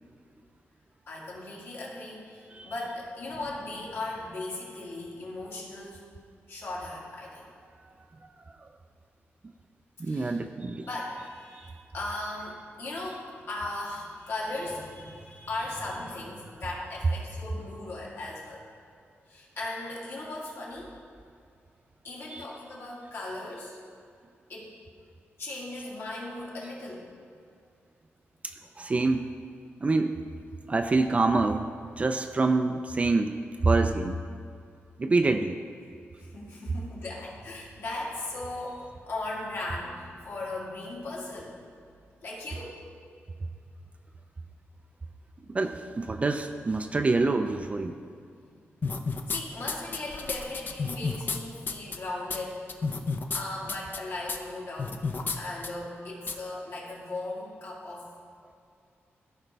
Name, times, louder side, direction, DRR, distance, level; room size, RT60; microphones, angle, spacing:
voice 1, 1.1-6.1 6.5-7.5 10.1-10.4 10.8-18.6 19.3-20.9 22.0-23.8 24.5-24.7 25.4-27.1 36.2-41.6 42.2-42.8 49.3-52.7 53.3-55.0 55.4-58.1, left 2 dB, 65° left, -5 dB, 2.2 m, -37 dB
voice 2, 10.0-10.9 22.3-22.4 28.8-29.2 29.8-30.2 30.7-31.7 32.0-33.4 33.6-34.2 35.0-35.6 45.5-48.0, right 3 dB, 30° right, 7 dB, 0.3 m, -26 dB
sound 1, 48.8-49.4 49.7-51.4 51.7-52.0 52.3-52.4 52.7-53.4 53.7-54.0 54.3-54.4 54.8-55.4 55.6-55.7 56.3-56.4, left 4 dB, 45° left, 0.6 m, -31 dB
14.5 x 5.0 x 3.4 m, 2.4 s
wide cardioid pair, 125°, 5 cm